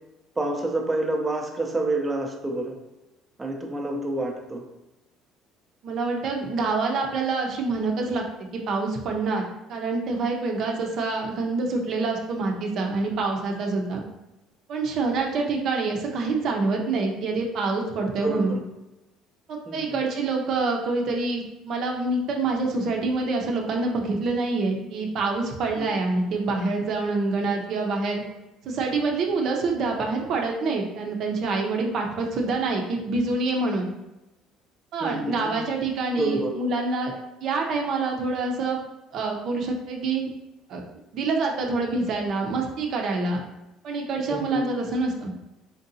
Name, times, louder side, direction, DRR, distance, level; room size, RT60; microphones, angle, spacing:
voice 1, 0.4-2.7 3.4-4.6 18.2-18.6 19.7-20.0 25.7-25.8 35.0-35.6 36.2-36.5 44.3-44.6, right 2 dB, 15° right, 0 dB, 0.6 m, -28 dB
voice 2, 5.8-8.2 8.5-9.4 9.7-14.0 14.7-18.6 19.5-28.2 28.6-33.9 34.9-37.1 37.4-38.8 39.1-40.3 40.7-40.8 41.1-43.4 43.8-45.3, right 3 dB, 60° right, 1 dB, 0.6 m, -26 dB
4.4 x 2.7 x 2.6 m, 0.96 s
cardioid pair, 110°, 0 cm